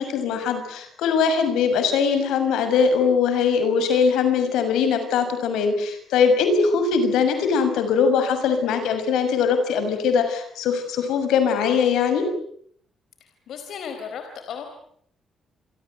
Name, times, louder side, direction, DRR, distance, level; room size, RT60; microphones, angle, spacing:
voice 1, 0.0-12.3, left 6 dB, 85° left, 9 dB, 6.4 m, -21 dB
voice 2, 13.5-14.6, left 7 dB, 70° left, 6 dB, 4.2 m, -34 dB
29.5 x 24.0 x 7.9 m, 0.65 s
cardioid pair, 90°, 0 cm